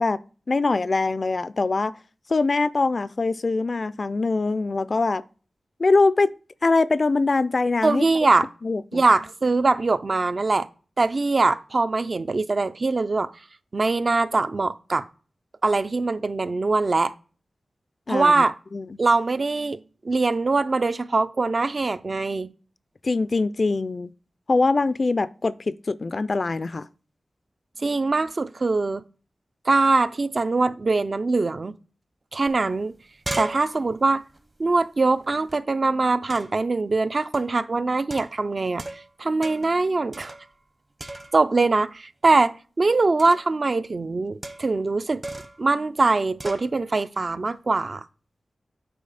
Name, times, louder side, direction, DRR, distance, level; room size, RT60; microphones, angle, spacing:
voice 1, 0.0-2.0 2.3-5.2 5.8-6.3 6.6-8.0 8.6-9.0 18.1-18.4 18.7-19.0 23.0-24.1 24.5-26.9, left 3 dB, 50° left, 0.3 m, -23 dB
voice 2, 7.8-8.5 8.9-10.7 11.0-13.3 13.7-15.1 15.6-17.1 18.1-18.5 19.0-22.5 27.8-29.0 29.7-31.7 32.3-32.9 33.4-34.2 34.6-38.8 39.2-40.3 41.3-45.2 45.6-48.1, right 3 dB, 50° right, 0.4 m, -22 dB
sound 1, 32.5-32.6 32.8-35.6 36.3-36.7 37.3-37.6 38.1-39.1 39.4-39.8 40.1-40.7 41.0-41.6 43.2-43.5 44.4-44.8 45.2-45.6 46.4-46.7, right 2 dB, 35° right, 0.9 m, -37 dB
8.4 x 4.9 x 4.0 m
wide cardioid pair, 65°, 0 cm